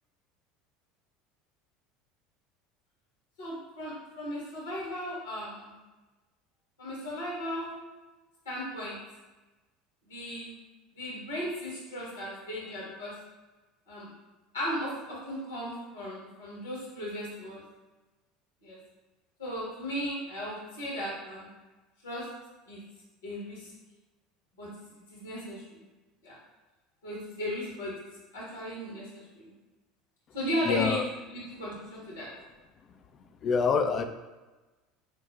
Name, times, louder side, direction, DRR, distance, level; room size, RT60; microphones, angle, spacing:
voice 1, 3.4-5.7 6.8-7.7 8.4-9.0 10.1-10.5 10.9-13.1 13.9-14.1 14.5-17.6 18.6-18.8 19.4-21.5 22.0-22.3 22.7-22.8 23.2-23.7 24.6-24.8 25.1-25.8 26.2-26.4 27.0-27.9 28.3-29.5 30.3-31.0 31.3-32.3, equal, 80° left, -5 dB, 1.4 m, -36 dB
voice 2, 30.6-31.0 33.4-34.0, left 5 dB, 40° left, 7 dB, 0.3 m, -25 dB
5.7 x 2.1 x 2.3 m, 1.2 s
figure-of-eight pair, 70°, 0 cm